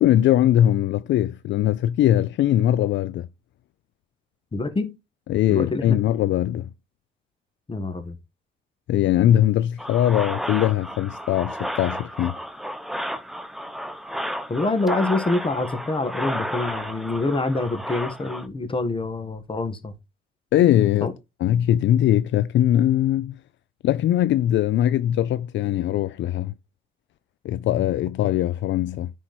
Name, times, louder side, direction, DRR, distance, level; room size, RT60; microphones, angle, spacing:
voice 1, 0.0-3.3 5.3-6.7 8.9-12.3 20.5-21.1 21.4-23.4 23.8-26.5 27.4-29.1, left 12 dB, 70° left, 0.4 m, -21 dB
voice 2, 4.5-4.9 5.5-6.0 7.7-8.1 14.5-19.9 21.0-21.1, left 2 dB, 25° left, 1.7 m, -26 dB
sound 1, 9.8-18.5, equal, ahead, 0.9 m, -32 dB
10.0 x 4.6 x 4.4 m
cardioid pair, 90°, 20 cm